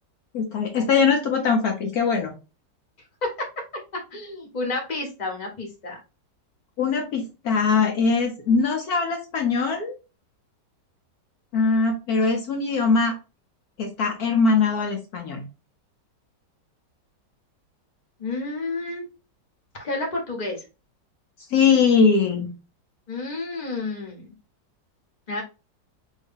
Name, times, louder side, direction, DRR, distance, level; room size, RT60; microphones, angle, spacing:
voice 1, 0.3-2.3 6.8-9.9 11.5-13.1 13.8-15.4 21.5-22.5, left 5 dB, 65° left, 2 dB, 1.1 m, -21 dB
voice 2, 3.2-3.5 3.9-6.0 18.2-19.0 19.7-20.6 23.1-24.3 25.3-25.4, left 2 dB, 30° left, 1 dB, 1.0 m, -30 dB
3.1 x 2.7 x 3.5 m, 0.30 s
omnidirectional pair, 1.9 m